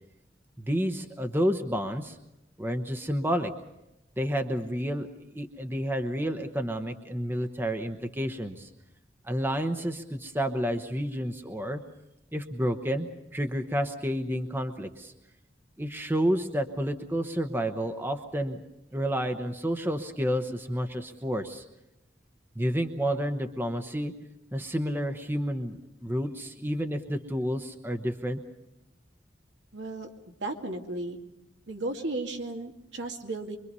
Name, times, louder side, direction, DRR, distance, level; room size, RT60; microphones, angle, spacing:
voice 1, 0.6-2.2 2.6-3.5 4.2-8.7 9.2-11.8 12.3-15.1 15.8-18.6 18.9-21.6 22.5-24.1 24.5-28.4, equal, 10° right, 6 dB, 1.0 m, -30 dB
voice 2, 29.7-30.1 30.4-31.2 31.7-33.6, right 2 dB, 75° right, 2 dB, 2.2 m, -34 dB
25.0 x 23.5 x 5.5 m, 0.92 s
head